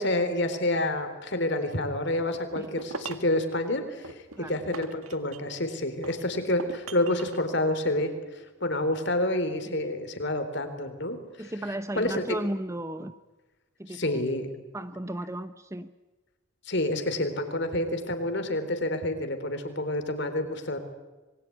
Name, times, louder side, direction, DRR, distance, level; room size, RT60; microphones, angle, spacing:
voice 1, 0.0-8.1 8.6-11.5 11.9-12.2 13.9-14.5 16.7-20.8, left 1 dB, 55° left, 8 dB, 3.8 m, -28 dB
sound 1, 2.3-3.4 4.0-5.6 6.0-7.4, right 3 dB, 90° right, 2.0 m, -40 dB
voice 2, 11.4-13.1 13.8-14.2 14.7-15.9, right 1 dB, 15° right, 11 dB, 0.8 m, -35 dB
26.5 x 23.0 x 9.6 m, 1.2 s
head